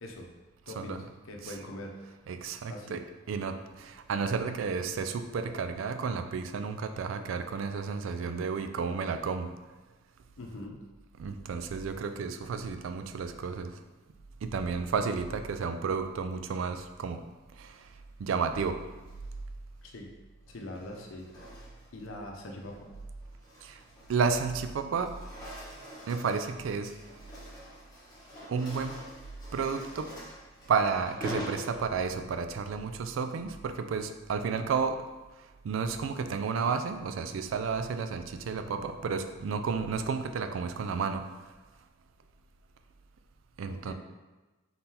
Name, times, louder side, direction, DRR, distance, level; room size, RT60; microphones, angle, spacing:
voice 1, 0.7-1.0 1.3-2.0 2.7-3.0 10.4-10.8 19.8-20.1 20.5-21.3 21.9-22.9 43.7-43.9, left 1 dB, 80° left, 1 dB, 0.7 m, -42 dB
voice 2, 2.3-9.5 11.2-13.7 14.4-17.2 17.6-17.7 18.2-18.8 23.6-23.8 24.1-25.1 26.1-26.9 28.5-29.0 29.5-30.1 30.7-35.0 35.6-41.3 43.6-43.9, right 5 dB, 70° right, 8 dB, 0.3 m, -32 dB
sound 1, 18.9-19.4 20.5-22.0 22.5-22.7 23.2-24.6 24.9-32.2, equal, 20° left, 1.2 m, -45 dB
3.9 x 3.7 x 2.9 m, 1.2 s
head